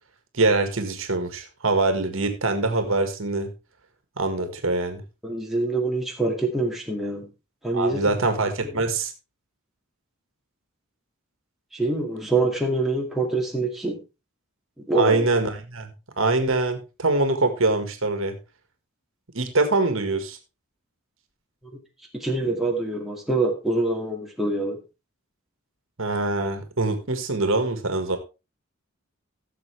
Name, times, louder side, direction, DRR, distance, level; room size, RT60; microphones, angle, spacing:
voice 1, 0.3-3.5 4.2-5.0 7.7-9.1 15.0-18.4 19.3-20.4 26.0-28.2, right 3 dB, 65° right, 7 dB, 1.7 m, -24 dB
voice 2, 5.2-7.3 7.6-8.2 8.6-8.8 11.7-14.0 14.9-15.3 22.1-24.8, right 2 dB, ahead, -1 dB, 2.1 m, -25 dB
16.0 x 7.1 x 3.4 m, 0.29 s
head